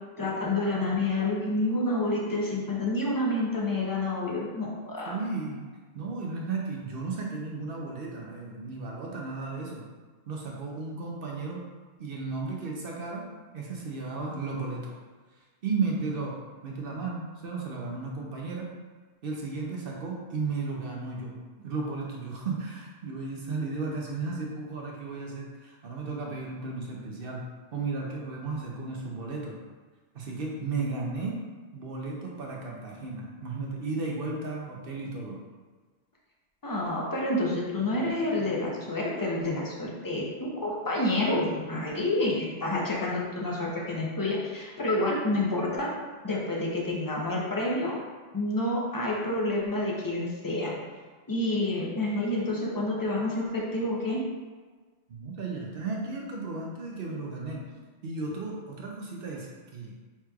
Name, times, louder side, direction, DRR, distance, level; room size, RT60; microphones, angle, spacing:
voice 1, 0.2-5.2 36.6-45.9 46.2-48.0 48.3-50.7 51.3-54.2, left 2 dB, 25° left, -3 dB, 0.5 m, -28 dB
voice 2, 5.1-5.7 5.9-9.9 10.3-11.6 12.0-13.3 13.5-14.9 15.6-16.4 16.6-18.7 19.2-27.4 27.7-29.6 30.1-31.4 31.7-35.4 55.1-57.6 58.0-59.5 59.7-59.9, right 3 dB, 55° right, -2 dB, 0.7 m, -34 dB
5.8 x 3.0 x 2.3 m, 1.4 s
omnidirectional pair, 1.3 m